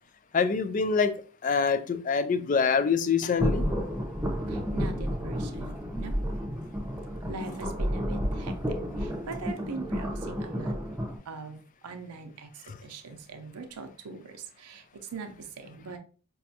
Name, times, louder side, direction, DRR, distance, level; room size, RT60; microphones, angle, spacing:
voice 1, 0.3-1.1 1.4-3.6, left 5 dB, 35° left, 10 dB, 0.3 m, -25 dB
sound 1, 3.4-11.2, equal, 10° right, 0.6 m, -31 dB
voice 2, 4.5-6.3 7.3-8.5 9.0-10.8 11.3-12.5 12.8-14.8 15.1-15.3 15.6-16.0, right 4 dB, 90° right, 6 dB, 0.6 m, -41 dB
5.1 x 2.3 x 2.7 m, 0.38 s
head